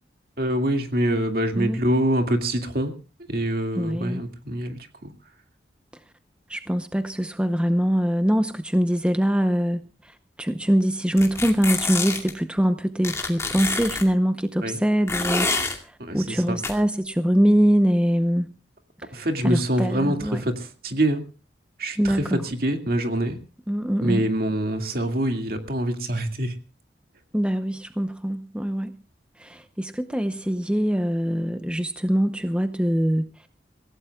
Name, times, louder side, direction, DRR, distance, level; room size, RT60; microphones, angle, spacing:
voice 1, 0.4-2.9 3.3-5.1 14.6-14.8 16.0-16.6 19.1-21.2 21.8-23.4 24.0-26.6, right 1 dB, 55° right, 5 dB, 2.2 m, -25 dB
voice 2, 3.8-4.2 6.5-15.5 15.8-18.5 19.2-20.4 22.0-22.4 23.7-24.2 27.3-28.9 29.4-33.5, equal, 5° right, 8 dB, 0.7 m, -23 dB
sound 1, 11.2-12.3 13.0-14.0 15.1-15.8 16.6-16.7, left 3 dB, 15° left, 2.3 m, -27 dB
27.0 x 16.5 x 2.3 m, 0.32 s
head